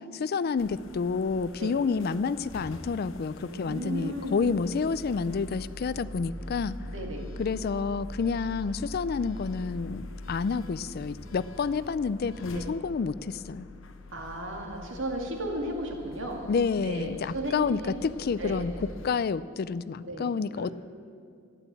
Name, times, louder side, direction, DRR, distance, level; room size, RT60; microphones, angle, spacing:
voice 1, 0.0-6.7 7.4-13.7 16.5-18.7 19.0-20.7, left 5 dB, 50° left, 17 dB, 0.4 m, -29 dB
sound 1, 0.6-19.3, left 1 dB, 70° left, 1.0 m, -44 dB
voice 2, 3.4-4.7 6.9-7.3 12.5-12.6 14.1-16.4 16.8-17.9 18.4-18.6 20.0-20.7, right 1 dB, 65° right, 1 dB, 2.4 m, -35 dB
sound 2, 4.4-6.6 6.8-8.9 9.2-11.5 11.7-12.3, right 1 dB, 35° right, 1.4 m, -53 dB
13.0 x 11.0 x 8.3 m, 2.4 s
head